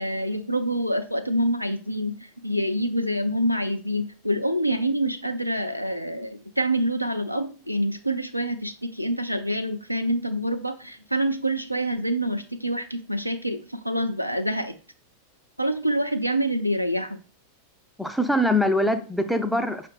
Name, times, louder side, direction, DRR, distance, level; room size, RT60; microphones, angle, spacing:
voice 1, 0.0-14.8 15.6-17.2, right 1 dB, 90° right, 7 dB, 0.3 m, -26 dB
voice 2, 18.0-19.9, left 1 dB, ahead, 7 dB, 0.4 m, -23 dB
5.5 x 2.4 x 3.3 m, 0.40 s
figure-of-eight pair, 90°, 0 cm